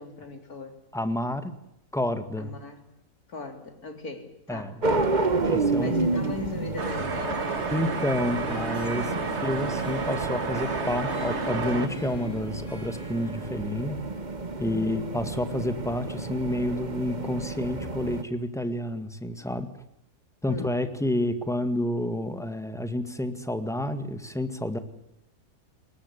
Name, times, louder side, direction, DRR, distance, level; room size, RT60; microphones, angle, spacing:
voice 1, 0.0-0.7 2.4-2.8 3.3-4.7 5.8-7.9 8.4-8.7 9.0-9.2 14.6-15.0 20.5-20.8, left 3 dB, 75° left, 6 dB, 4.2 m, -39 dB
voice 2, 0.9-1.5 1.9-2.5 4.5-4.8 5.4-5.9 7.7-14.0 14.6-19.7 20.4-24.8, left 1 dB, ahead, 10 dB, 1.9 m, -29 dB
sound 1, 4.8-18.2, right 3 dB, 30° right, 1.5 m, -31 dB
Harp, 6.8-15.5, left 3 dB, 50° left, 7.4 m, -44 dB
sound 2, 6.8-11.9, right 4 dB, 45° right, 2.1 m, -31 dB
21.5 x 19.5 x 9.9 m, 0.82 s
omnidirectional pair, 1.6 m